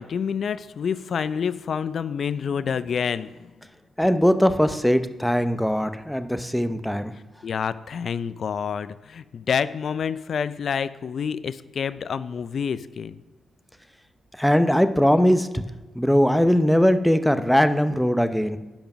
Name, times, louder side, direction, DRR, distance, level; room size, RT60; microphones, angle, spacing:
voice 1, 0.0-3.5 7.4-13.2, left 7 dB, 65° left, 14 dB, 0.3 m, -28 dB
voice 2, 4.0-7.1 14.4-15.6 15.9-18.6, equal, 5° left, 10 dB, 0.7 m, -20 dB
8.9 x 5.1 x 6.0 m, 1.2 s
supercardioid pair, 50°, 0 cm